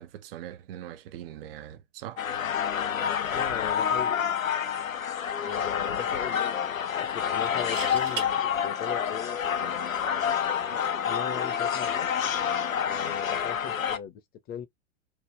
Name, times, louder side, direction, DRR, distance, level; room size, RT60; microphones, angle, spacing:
voice 1, 0.0-2.2, right 11 dB, 50° right, 0.5 m, -42 dB
sound 1, 2.2-14.0, left 8 dB, 85° left, 0.6 m, -28 dB
voice 2, 3.3-4.6 5.4-9.8 10.4-12.1 12.8-14.2 14.5-14.7, left 8 dB, 25° left, 0.7 m, -39 dB
sound 2, 4.6-4.9 5.2-5.3 7.5-8.3 10.1-10.3, right 5 dB, 70° right, 1.2 m, -37 dB
3.0 x 2.2 x 3.4 m
figure-of-eight pair, 100°, 39 cm